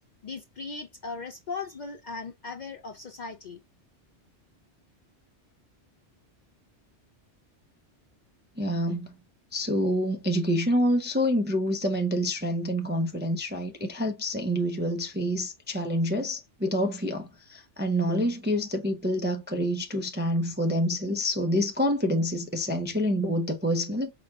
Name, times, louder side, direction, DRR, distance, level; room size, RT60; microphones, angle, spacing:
voice 1, 0.2-3.6, left 4 dB, 55° left, 0.5 m, -38 dB
voice 2, 8.6-9.1 9.5-24.1, equal, 15° right, 0.3 m, -27 dB
4.9 x 2.2 x 3.5 m
omnidirectional pair, 1.2 m